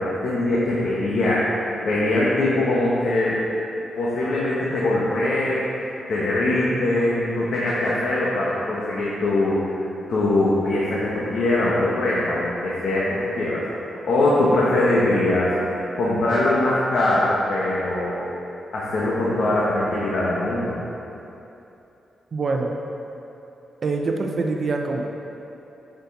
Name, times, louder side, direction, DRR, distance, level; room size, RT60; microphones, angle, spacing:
voice 1, 0.0-1.5 1.8-3.4 4.0-9.7 10.1-13.6 14.0-15.5 15.9-18.2 18.7-20.8, left 2 dB, 70° left, -7 dB, 1.3 m, -22 dB
voice 2, 22.3-22.7 23.8-25.1, right 3 dB, 50° right, 2 dB, 0.8 m, -24 dB
8.8 x 5.4 x 4.1 m, 2.9 s
cardioid pair, 90°, 0 cm